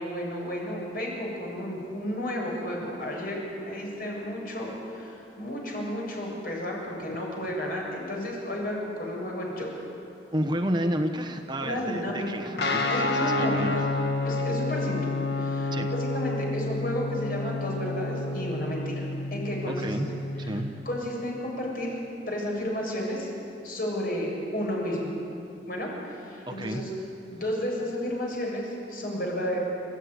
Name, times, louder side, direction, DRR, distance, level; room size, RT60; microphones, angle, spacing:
voice 1, 0.0-9.7 11.6-12.5 12.9-13.8 14.2-15.7 16.1-20.1 20.4-20.6 20.8-22.0 22.3-23.3 23.6-25.1 25.7-26.9 27.3-29.6, equal, 55° left, -2 dB, 7.2 m, -32 dB
voice 2, 10.3-13.8 15.7-15.9 19.7-20.7 26.5-26.9, right 1 dB, 25° right, 5 dB, 1.1 m, -31 dB
Guitar, 12.6-20.6, left 2 dB, 70° left, 1.7 m, -29 dB
30.0 x 14.5 x 9.7 m, 2.8 s
head